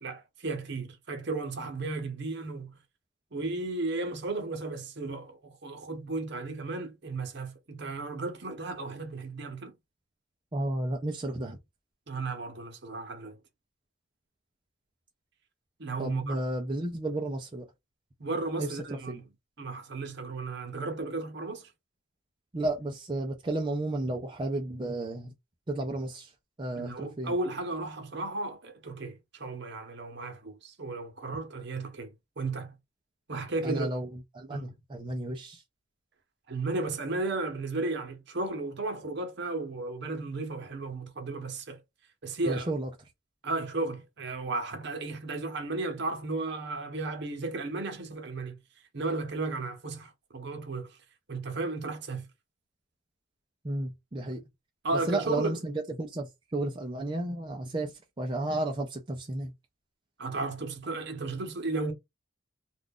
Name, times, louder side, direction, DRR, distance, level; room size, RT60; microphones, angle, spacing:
voice 1, 0.0-2.7 3.3-9.7 12.1-13.4 15.8-16.4 18.2-19.2 19.6-21.7 26.8-32.7 33.3-33.9 34.5-34.7 36.5-41.8 42.2-42.7 43.4-48.6 48.9-51.0 51.3-52.2 54.8-55.6 60.2-61.9, right 3 dB, 55° right, 0.8 m, -34 dB
voice 2, 10.5-11.6 16.0-17.7 18.6-19.2 22.5-25.3 25.7-26.3 26.6-27.3 33.6-34.1 34.3-35.6 42.5-42.9 53.6-54.4 55.1-59.5, right 1 dB, 25° right, 0.4 m, -32 dB
2.4 x 2.3 x 3.5 m
head